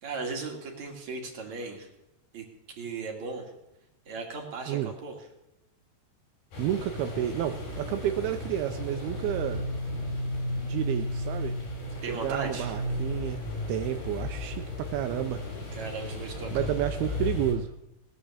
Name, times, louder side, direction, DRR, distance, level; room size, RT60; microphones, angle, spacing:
voice 1, 0.0-1.9 2.3-2.4 2.8-3.5 4.1-5.2 12.0-12.8 15.7-16.7 17.0-17.2, right 4 dB, 50° right, 2 dB, 3.1 m, -37 dB
sound 1, 6.5-17.5, left 1 dB, 65° left, 6.8 m, -34 dB
voice 2, 6.6-9.7 10.6-11.6 12.1-13.4 13.7-15.4 16.5-17.7, right 12 dB, 80° right, 8 dB, 2.5 m, -31 dB
19.5 x 10.0 x 7.2 m, 0.93 s
omnidirectional pair, 4.6 m